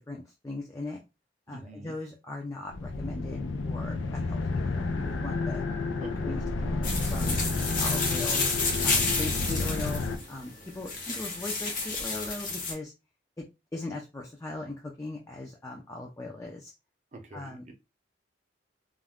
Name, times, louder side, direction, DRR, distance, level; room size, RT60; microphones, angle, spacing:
voice 1, 0.1-1.0 1.5-5.6 6.2-8.4 8.8-10.0 10.3-12.9 13.4-13.5 13.7-16.7 17.3-17.7, left 2 dB, 15° left, 0.4 m, -39 dB
voice 2, 1.5-1.9 6.0-6.5 17.1-17.7, right 2 dB, 40° right, 0.6 m, -45 dB
sound 1, 2.7-10.2, left 3 dB, 90° left, 0.4 m, -31 dB
sound 2, 6.8-12.7, left 3 dB, 45° left, 0.8 m, -30 dB
2.4 x 2.1 x 3.4 m
head